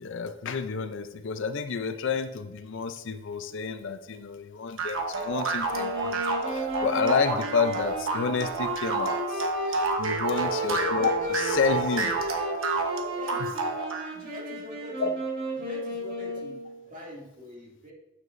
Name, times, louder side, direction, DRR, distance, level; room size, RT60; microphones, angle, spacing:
voice 1, 0.0-12.1 15.0-15.1, left 5 dB, 65° left, 10 dB, 0.5 m, -30 dB
sound 1, 4.8-14.1, right 3 dB, 80° right, 1.1 m, -30 dB
Wind instrument woodwind instrument, 5.7-16.8, equal, 55° right, 2.8 m, -33 dB
voice 2, 10.1-10.5 13.2-13.6 13.9-15.1 15.6-17.9, equal, 40° right, -4 dB, 2.3 m, -44 dB
9.4 x 7.4 x 2.6 m, 0.97 s
head